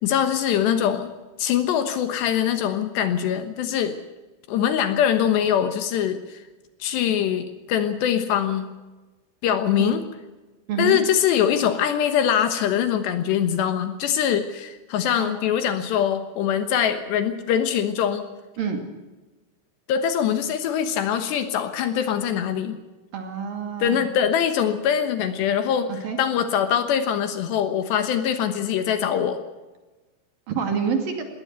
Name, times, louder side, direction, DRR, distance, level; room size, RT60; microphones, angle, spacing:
voice 1, 0.0-1.1 1.4-4.0 4.5-6.4 6.8-8.7 9.4-10.0 10.8-18.2 19.9-22.8 23.8-25.9 26.2-29.4, left 9 dB, 70° left, 10 dB, 3.2 m, -23 dB
voice 2, 10.7-11.0 15.2-15.3 18.6-18.8 23.1-24.1 25.9-26.2 30.5-31.2, right 6 dB, 55° right, 6 dB, 3.7 m, -27 dB
20.5 x 17.5 x 8.1 m, 1.2 s
omnidirectional pair, 5.5 m